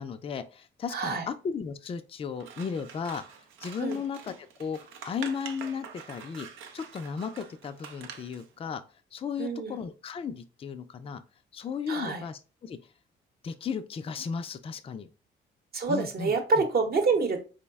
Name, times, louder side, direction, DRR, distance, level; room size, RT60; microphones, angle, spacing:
voice 1, 0.0-3.2 3.6-4.8 5.0-6.5 6.7-8.8 9.1-11.2 11.5-12.8 13.4-15.1 15.9-16.6, left 6 dB, 30° left, 9 dB, 0.3 m, -35 dB
voice 2, 0.9-1.3 3.8-4.0 9.4-9.8 11.9-12.2 15.7-17.4, right 4 dB, 50° right, 5 dB, 0.8 m, -27 dB
Scissors, 2.4-8.5, right 7 dB, 85° right, 0.5 m, -46 dB
3.8 x 2.1 x 3.4 m, 0.34 s
cardioid pair, 90°, 20 cm